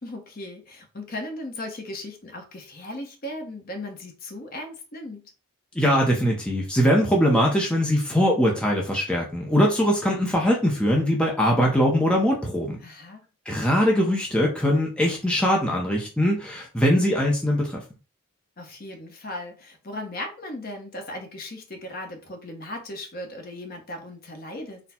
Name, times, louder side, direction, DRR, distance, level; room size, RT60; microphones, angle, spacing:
voice 1, 0.0-5.3 12.8-13.3 18.6-24.8, left 1 dB, 45° left, 0.9 m, -37 dB
voice 2, 5.8-12.8 13.5-17.8, equal, 5° left, 0.7 m, -21 dB
4.2 x 2.2 x 4.2 m
head